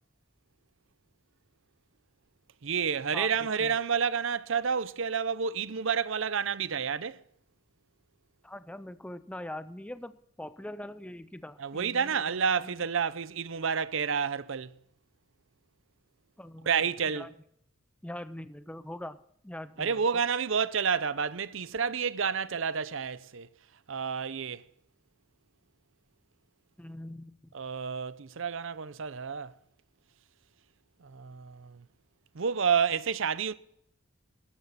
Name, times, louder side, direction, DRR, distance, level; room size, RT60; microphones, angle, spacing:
voice 1, 2.6-7.2 11.6-14.7 16.7-17.3 19.8-23.5 23.9-24.6 27.5-29.5 31.0-31.8 32.3-33.5, right 6 dB, 65° right, 0.6 m, -29 dB
voice 2, 8.4-12.2 12.5-12.7 16.4-17.3 18.0-19.2 19.4-20.0 26.8-27.5, left 1 dB, 5° left, 0.5 m, -42 dB
14.0 x 12.5 x 4.2 m
head